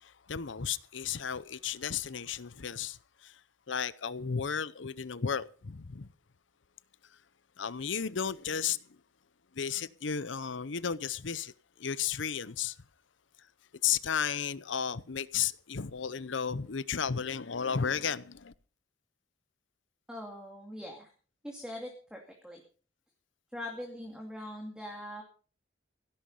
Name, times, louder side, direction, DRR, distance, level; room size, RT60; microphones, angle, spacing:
voice 1, 0.0-3.4 3.7-6.1 7.6-8.8 9.5-11.5 11.8-12.8 13.8-18.5, left 7 dB, 75° left, 0.7 m, -33 dB
voice 2, 20.1-21.1 21.4-22.6 23.5-25.2, left 1 dB, 5° right, 2.5 m, -42 dB
16.5 x 12.0 x 5.5 m
head